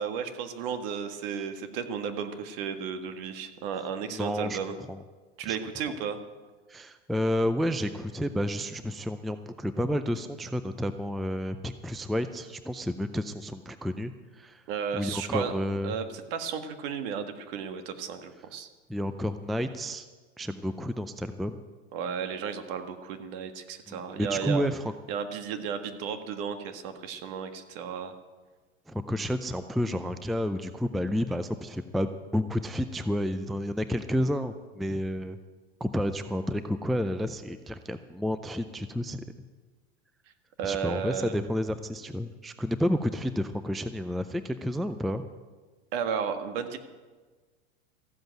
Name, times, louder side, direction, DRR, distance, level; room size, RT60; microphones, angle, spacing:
voice 1, 0.0-4.8 5.4-6.2 14.7-15.5 15.8-16.0 16.3-18.7 21.9-24.7 25.1-28.1 40.6-41.3 45.9-46.8, right 7 dB, 60° right, 8 dB, 1.7 m, -33 dB
voice 2, 4.1-4.6 4.9-5.0 5.4-5.6 6.7-14.6 14.9-16.0 18.9-20.1 20.4-21.6 23.9-24.8 28.9-35.4 35.8-39.5 40.6-45.2, equal, ahead, 11 dB, 0.4 m, -30 dB
14.5 x 7.8 x 9.1 m, 1.4 s
hypercardioid pair, 115°, 33 cm